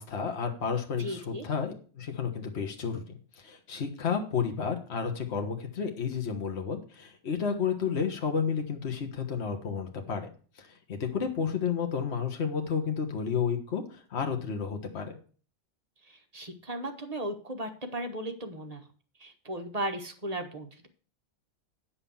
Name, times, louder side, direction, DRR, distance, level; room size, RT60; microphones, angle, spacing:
voice 1, 0.0-3.0 3.4-10.3 10.6-15.2, left 6 dB, 55° left, 4 dB, 1.5 m, -31 dB
voice 2, 1.0-1.5 16.1-18.8 19.2-20.9, right 1 dB, 30° right, 4 dB, 1.2 m, -36 dB
9.3 x 5.8 x 7.0 m, 0.41 s
omnidirectional pair, 1.4 m